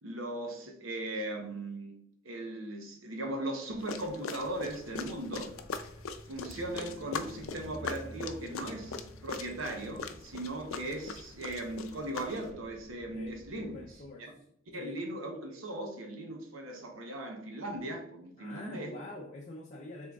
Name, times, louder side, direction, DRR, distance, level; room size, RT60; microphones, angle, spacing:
voice 1, 0.0-2.0 2.2-5.9 6.3-13.8 14.2-14.3 14.7-18.9, right 1 dB, 75° right, 0.8 m, -38 dB
sound 1, 3.8-12.5, left 5 dB, 85° left, 0.5 m, -41 dB
sound 2, 4.4-14.0, equal, 10° left, 1.2 m, -52 dB
Bass guitar, 6.6-12.9, left 5 dB, 60° right, 1.3 m, -59 dB
voice 2, 13.1-14.3 14.8-15.0 18.4-20.1, left 2 dB, 35° left, 0.5 m, -45 dB
6.1 x 3.7 x 2.3 m
head